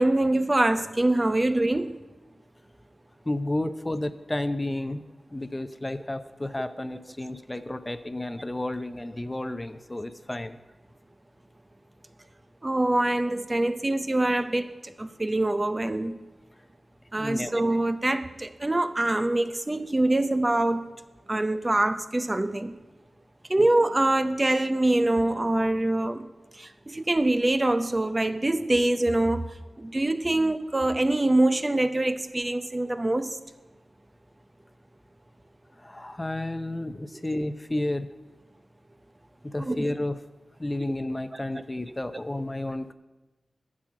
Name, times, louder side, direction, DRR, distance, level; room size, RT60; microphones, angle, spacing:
voice 1, 0.0-2.0 12.6-14.7 15.0-16.2 17.1-20.8 21.3-22.7 23.5-26.2 26.9-29.4 29.8-33.3 39.7-39.8 41.9-42.0, right 1 dB, 30° right, 10 dB, 0.6 m, -24 dB
voice 2, 3.3-5.0 5.3-10.6 17.2-17.5 23.6-23.7 35.8-38.1 39.4-40.2 40.6-42.9, left 1 dB, 25° left, 11 dB, 0.6 m, -31 dB
10.0 x 6.2 x 7.5 m, 1.1 s
cardioid pair, 40°, 0 cm